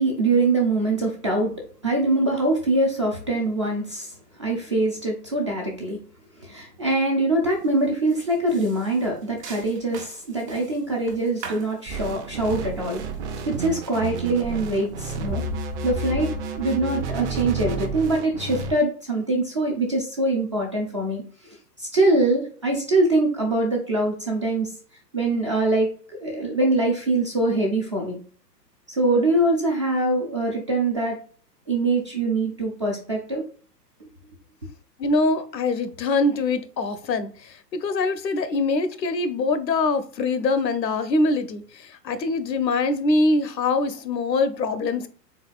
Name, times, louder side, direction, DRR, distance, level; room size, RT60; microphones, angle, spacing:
voice 1, 0.0-1.5 1.8-4.1 4.4-6.0 6.4-13.0 13.4-15.4 15.8-24.7 25.1-28.2 28.9-31.2 31.7-33.4, right 2 dB, 20° right, 0 dB, 0.3 m, -23 dB
sound 1, 7.5-7.7 8.1-15.7, right 6 dB, 70° right, 1.3 m, -41 dB
sound 2, 11.9-18.7, right 3 dB, 45° right, 0.8 m, -31 dB
voice 2, 35.0-45.1, left 3 dB, 80° left, 11 dB, 0.8 m, -23 dB
4.1 x 3.7 x 2.3 m, 0.42 s
figure-of-eight pair, 110°, 50 cm